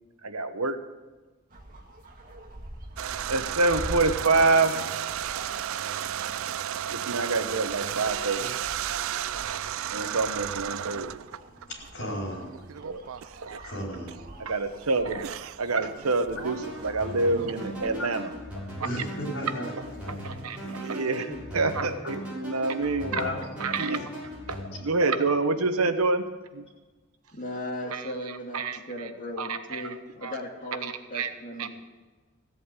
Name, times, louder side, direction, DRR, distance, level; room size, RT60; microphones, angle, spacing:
voice 1, 0.2-0.8 3.3-4.8 6.9-8.5 9.9-11.2 12.8-13.0 13.4-13.7 14.4-18.3 19.8-23.2 23.6-24.0 24.5-26.2 26.5-26.6 27.9-29.1 29.4-30.4 30.8-31.3 31.6-31.7, right 3 dB, 90° right, 9 dB, 1.1 m, -27 dB
sound 1, 1.5-18.0, right 1 dB, 40° right, 2.0 m, -45 dB
sound 2, 3.0-11.9 12.4-13.6 14.1-14.2 15.1-18.0 18.6-19.2 19.5-21.1, right 10 dB, 70° right, 0.4 m, -34 dB
voice 2, 11.5-12.5 13.6-14.2 17.2-17.4 17.8-18.4 18.8-19.7 20.0-20.1 22.5-23.8 24.6-24.8, left 1 dB, 75° left, -1 dB, 4.8 m, -35 dB
sound 3, 16.4-24.7, equal, 5° right, 6.6 m, -39 dB
voice 3, 27.3-31.7, left 1 dB, 35° left, -1 dB, 2.3 m, -37 dB
15.5 x 8.4 x 8.3 m, 1.3 s
head